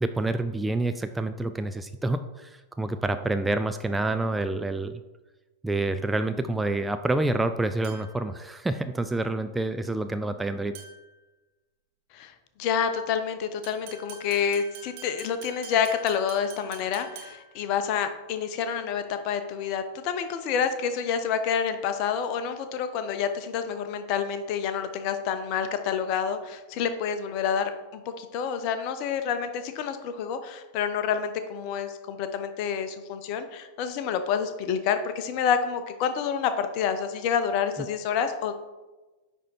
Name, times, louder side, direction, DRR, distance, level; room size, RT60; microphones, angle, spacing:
voice 1, 0.0-5.0 5.6-10.8, right 2 dB, 10° right, 9 dB, 0.3 m, -28 dB
sound 1, 7.8-8.3 10.7-11.2 13.6-17.6, right 5 dB, 45° right, 1.6 m, -45 dB
voice 2, 12.6-38.5, left 7 dB, 45° left, 9 dB, 0.7 m, -28 dB
9.5 x 3.6 x 4.3 m, 1.1 s
figure-of-eight pair, 90°, 0 cm